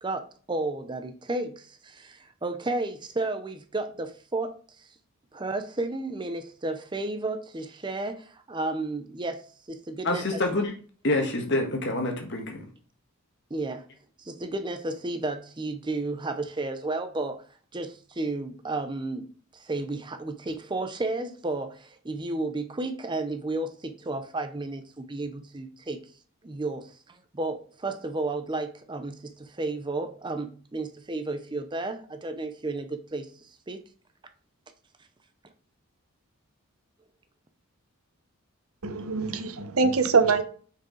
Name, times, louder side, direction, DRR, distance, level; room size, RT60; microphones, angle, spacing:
voice 1, 0.0-4.9 5.3-9.4 9.7-10.4 13.5-13.9 14.2-17.4 17.7-19.3 19.5-26.0 26.4-26.8 27.4-33.8, right 2 dB, 20° right, 8 dB, 0.5 m, -32 dB
voice 2, 10.0-10.7 11.0-12.7, left 2 dB, 55° left, 3 dB, 1.4 m, -27 dB
voice 3, 38.8-40.4, right 4 dB, 80° right, 9 dB, 0.8 m, -23 dB
6.0 x 4.7 x 3.8 m, 0.42 s
head